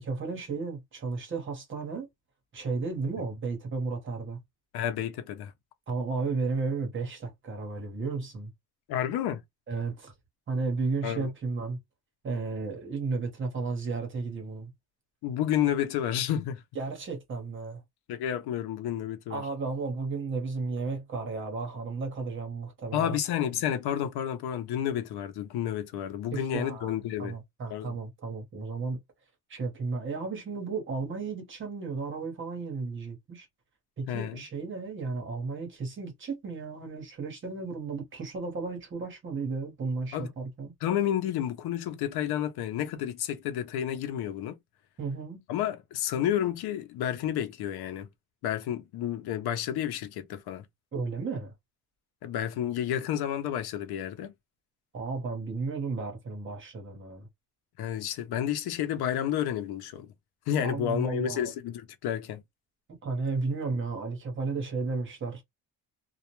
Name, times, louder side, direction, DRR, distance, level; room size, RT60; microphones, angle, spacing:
voice 1, 0.0-2.1 2.5-4.4 5.9-8.5 9.7-10.1 10.5-11.8 12.2-14.7 16.7-17.8 19.3-23.2 26.3-26.9 27.2-29.0 29.5-33.5 34.0-40.7 45.0-45.4 50.9-51.5 54.9-57.3 60.6-61.5 63.0-65.4, right 4 dB, 30° right, 1.0 m, -33 dB
voice 2, 4.7-5.5 8.9-9.4 11.0-11.3 15.2-16.6 18.1-19.4 22.9-27.3 27.7-28.0 34.1-34.4 40.1-40.3 40.8-44.5 45.5-48.1 48.4-50.7 52.2-54.3 57.8-60.1 60.5-62.4, left 10 dB, 85° left, 0.7 m, -30 dB
2.3 x 2.2 x 2.9 m
cardioid pair, 165°, 37 cm